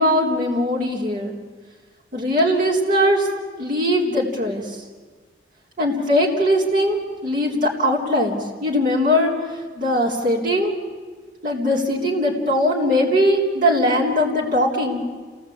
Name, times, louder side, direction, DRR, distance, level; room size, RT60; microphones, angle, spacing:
voice 1, 0.0-1.3 2.1-3.3 3.6-4.8 5.8-9.3 9.8-10.7 11.4-15.0, equal, 50° right, -2 dB, 3.5 m, -20 dB
29.0 x 18.0 x 8.6 m, 1.4 s
head